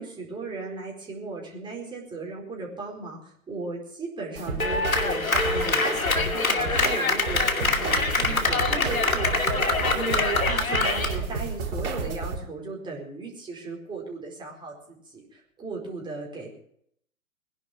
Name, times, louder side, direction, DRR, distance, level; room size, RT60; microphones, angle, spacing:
voice 1, 0.0-16.5, right 4 dB, 10° right, -1 dB, 4.7 m, -37 dB
sound 1, 4.4-12.3, right 4 dB, 40° right, 5.0 m, -31 dB
Clapping, 4.6-11.2, left 3 dB, 75° left, 2.5 m, -24 dB
20.5 x 11.0 x 6.1 m, 0.67 s
figure-of-eight pair, 115°, 43 cm